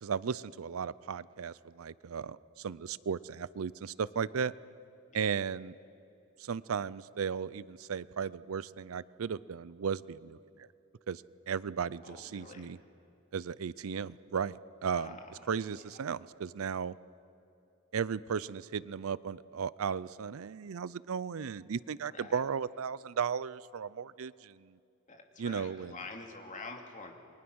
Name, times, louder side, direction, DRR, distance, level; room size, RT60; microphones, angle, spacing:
voice 1, 0.0-4.5 5.1-5.7 6.4-10.7 11.1-12.8 13.3-15.2 15.5-16.9 17.9-24.8 25.4-25.9, right 6 dB, 75° right, 19 dB, 0.5 m, -35 dB
voice 2, 12.0-12.7 14.9-15.9 22.1-22.4 25.1-27.1, left 3 dB, 35° left, 3 dB, 2.5 m, -47 dB
29.0 x 22.5 x 6.3 m, 2.7 s
head